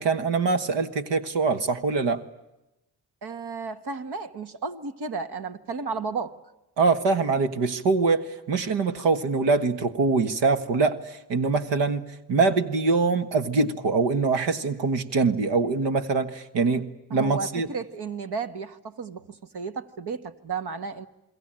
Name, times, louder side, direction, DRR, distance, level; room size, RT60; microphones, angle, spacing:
voice 1, 0.0-2.2 6.8-17.7, right 4 dB, 85° right, 1.6 m, -24 dB
voice 2, 3.2-6.3 17.1-21.1, right 4 dB, 65° right, 1.7 m, -33 dB
29.0 x 21.5 x 8.9 m
cardioid pair, 60°, 42 cm